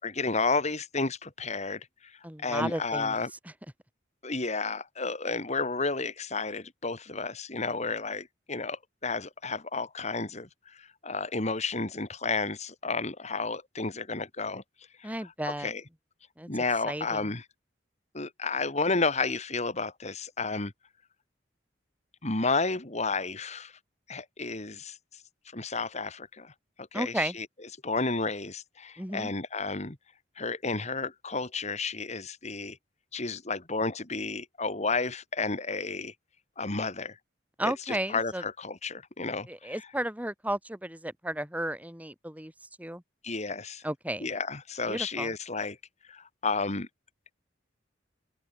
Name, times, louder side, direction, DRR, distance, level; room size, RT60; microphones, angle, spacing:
voice 1, 0.0-3.3 4.2-14.6 15.0-15.1 15.5-15.8 16.5-17.4 18.1-20.7 22.2-23.7 24.1-25.0 25.5-26.5 26.8-27.5 27.8-30.0 30.4-32.8 33.1-36.1 36.6-37.2 37.6-39.7 43.2-43.8 44.2-45.8 46.1-46.9, left 3 dB, 40° left, 2.7 m, -32 dB
voice 2, 2.2-3.2 15.0-15.7 16.4-16.5 16.9-17.3 26.9-27.3 29.0-29.3 37.6-38.4 39.5-42.5 42.8-43.0 43.8-44.3 44.9-45.3, right 1 dB, 10° right, 4.2 m, -33 dB
open air
head